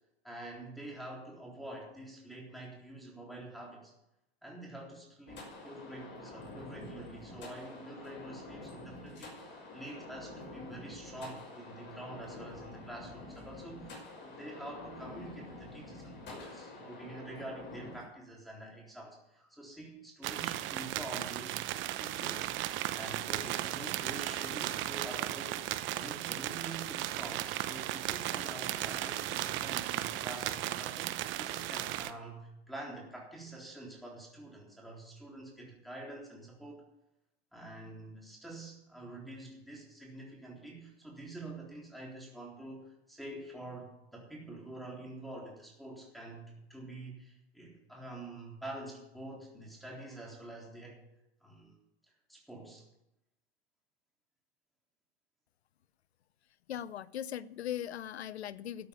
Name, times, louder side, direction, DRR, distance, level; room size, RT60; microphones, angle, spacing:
voice 1, 0.2-3.9 4.4-21.5 21.8-36.8 37.5-51.0 51.4-51.7 52.3-52.9, right 1 dB, ahead, -3 dB, 3.7 m, -47 dB
sound 1, 5.3-18.0, left 2 dB, 35° left, 5.7 m, -47 dB
sound 2, 20.2-32.1, right 14 dB, 40° right, 0.9 m, -36 dB
voice 2, 56.7-58.9, left 10 dB, 85° left, 19 dB, 0.7 m, -39 dB
12.5 x 8.5 x 7.1 m, 0.88 s
hypercardioid pair, 105°, 31 cm